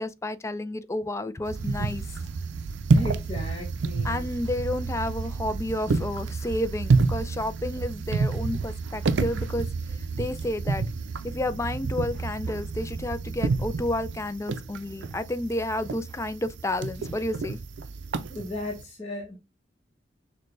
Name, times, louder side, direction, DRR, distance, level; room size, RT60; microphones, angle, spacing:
voice 1, 0.0-2.0 4.0-10.8 11.2-17.6, left 1 dB, 15° left, 0.4 m, -31 dB
sound 1, 1.4-18.8, right 4 dB, 90° right, 0.5 m, -29 dB
voice 2, 2.9-4.4 18.3-19.4, left 1 dB, 30° left, 1.0 m, -36 dB
6.4 x 2.2 x 3.2 m
head